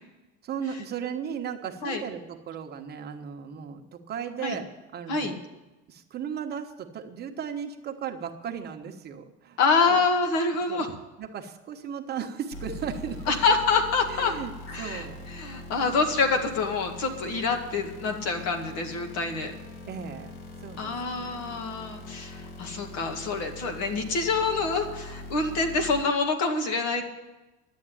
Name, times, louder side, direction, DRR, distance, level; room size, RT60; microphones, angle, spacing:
voice 1, 0.4-4.7 4.9-5.4 5.9-9.6 9.9-10.0 10.7-10.9 11.2-13.4 14.1-15.3 19.9-21.4, right 7 dB, 35° right, 4 dB, 1.1 m, -36 dB
voice 2, 9.6-10.9 13.3-14.3 14.7-15.1 15.3-19.5 20.8-27.0, left 4 dB, 60° left, 5 dB, 2.1 m, -26 dB
sound 1, 12.5-26.0, left 2 dB, 80° left, 1.9 m, -42 dB
11.5 x 8.4 x 9.9 m, 1.1 s
cardioid pair, 140°, 29 cm